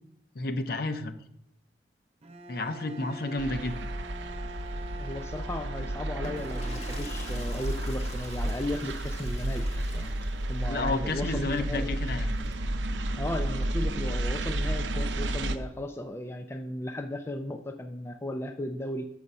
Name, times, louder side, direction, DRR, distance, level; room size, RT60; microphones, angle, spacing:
voice 1, 0.3-1.1 2.5-3.7 10.7-12.3, left 2 dB, 55° left, 9 dB, 0.7 m, -31 dB
Bowed string instrument, 2.2-8.4, right 1 dB, 35° right, 0.6 m, -45 dB
sound 1, 3.4-15.6, right 1 dB, 85° right, 0.7 m, -32 dB
voice 2, 5.0-11.9 13.2-19.1, left 1 dB, 15° left, 7 dB, 0.4 m, -36 dB
sound 2, 6.1-12.7 14.1-15.5, left 2 dB, 35° left, 1.2 m, -47 dB
6.9 x 6.3 x 5.4 m, 0.77 s
head